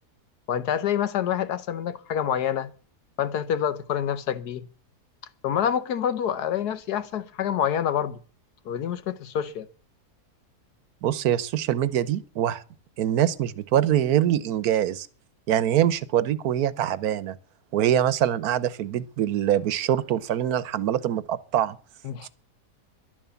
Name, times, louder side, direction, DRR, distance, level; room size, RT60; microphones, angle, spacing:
voice 1, 0.5-2.7 3.2-4.7 5.4-8.2 8.6-9.7 22.0-22.3, left 9 dB, 75° left, 1.5 m, -27 dB
voice 2, 11.0-12.6 13.0-15.1 15.5-17.4 17.7-21.8 22.2-22.3, right 11 dB, 70° right, 1.3 m, -24 dB
11.5 x 11.0 x 7.0 m
omnidirectional pair, 1.7 m